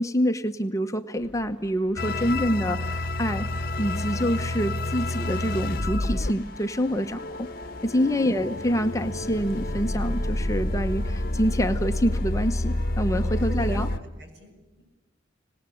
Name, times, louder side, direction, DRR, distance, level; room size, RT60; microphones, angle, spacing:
voice 1, 0.0-7.5 7.8-13.9, equal, 15° left, 6 dB, 0.9 m, -26 dB
sound 1, 1.2-10.4, left 1 dB, 5° right, 2.1 m, -50 dB
sound 2, 2.0-14.0, left 1 dB, 50° left, 1.1 m, -29 dB
voice 2, 13.2-14.5 14.8-14.9, left 1 dB, 65° right, 4 dB, 6.9 m, -46 dB
25.5 x 19.5 x 9.9 m, 1.1 s
head